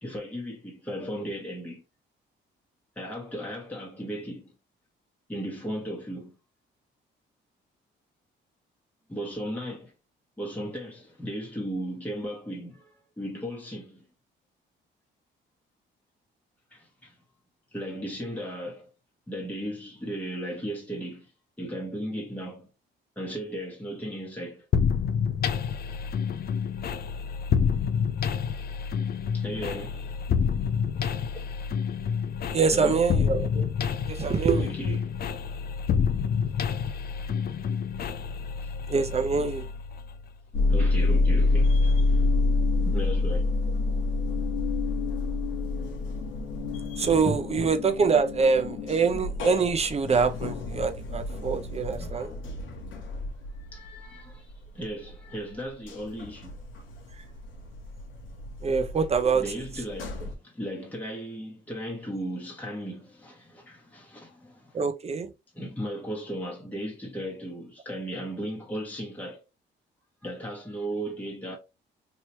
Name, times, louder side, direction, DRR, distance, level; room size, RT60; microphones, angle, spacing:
voice 1, 0.0-1.8 3.0-4.5 5.3-6.4 9.1-9.9 10.4-14.0 16.7-17.2 17.7-18.9 19.3-21.3 21.6-22.7 23.2-24.7 29.3-30.1 30.9-31.5 32.7-33.0 34.6-35.2 38.6-38.7 40.7-41.9 42.8-43.5 53.5-56.6 59.3-64.8 65.5-69.4 70.2-71.6, equal, 10° left, 1.1 m, -36 dB
sound 1, 24.7-40.4, left 7 dB, 50° left, 0.5 m, -28 dB
voice 2, 32.5-33.7 34.1-34.7 38.9-39.7 47.0-52.3 57.2-57.3 58.6-59.5 64.7-65.3, right 5 dB, 30° right, 0.7 m, -25 dB
sound 2, 40.5-55.1 55.5-60.3, left 3 dB, 75° left, 1.0 m, -28 dB
3.1 x 2.9 x 2.9 m
cardioid pair, 90°, 20 cm